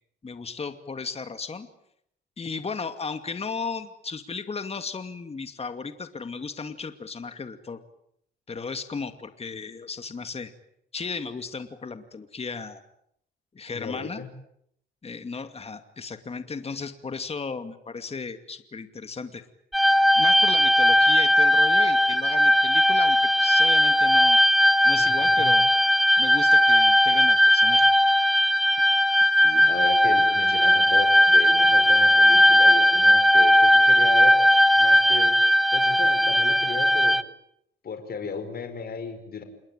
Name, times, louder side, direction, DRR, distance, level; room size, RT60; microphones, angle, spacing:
voice 1, 0.2-1.7 2.4-7.8 8.5-10.5 10.9-12.8 13.5-14.2 15.0-19.4 20.2-24.4 24.8-25.7 26.2-27.9, left 4 dB, 30° left, 9 dB, 2.5 m, -35 dB
voice 2, 13.7-14.3 25.0-25.5 29.4-34.4 34.8-35.4 35.7-37.2 37.8-39.4, left 5 dB, 50° left, 8 dB, 4.9 m, -35 dB
sound 1, 19.7-37.2, equal, ahead, 1.2 m, -18 dB
28.0 x 21.5 x 9.1 m, 0.72 s
cardioid pair, 90°, 20 cm